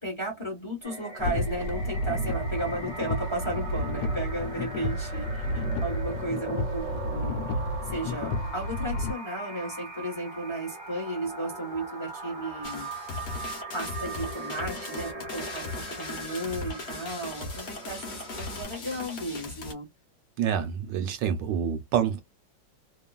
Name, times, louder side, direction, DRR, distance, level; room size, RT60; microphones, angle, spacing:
voice 1, 0.0-7.4 7.8-12.9 13.4-19.9, right 1 dB, 20° left, 0.9 m, -34 dB
sound 1, 0.8-18.6, right 3 dB, 5° right, 0.7 m, -40 dB
sound 2, 1.2-9.1, left 1 dB, 75° left, 1.1 m, -31 dB
sound 3, 12.6-19.7, left 3 dB, 45° left, 0.9 m, -38 dB
voice 2, 20.4-22.2, right 8 dB, 75° right, 1.2 m, -27 dB
2.9 x 2.3 x 2.3 m
omnidirectional pair, 2.1 m